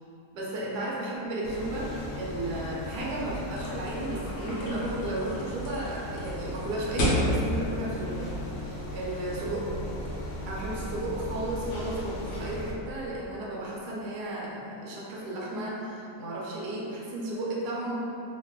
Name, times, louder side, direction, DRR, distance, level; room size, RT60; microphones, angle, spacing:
voice 1, 0.3-9.7 10.5-17.9, right 1 dB, 85° right, -5 dB, 1.2 m, -34 dB
sound 1, 1.4-12.7, left 1 dB, 80° left, 1.1 m, -37 dB
sound 2, 3.6-8.9, left 1 dB, 60° left, 0.8 m, -33 dB
3.1 x 2.1 x 3.5 m, 2.9 s
omnidirectional pair, 1.7 m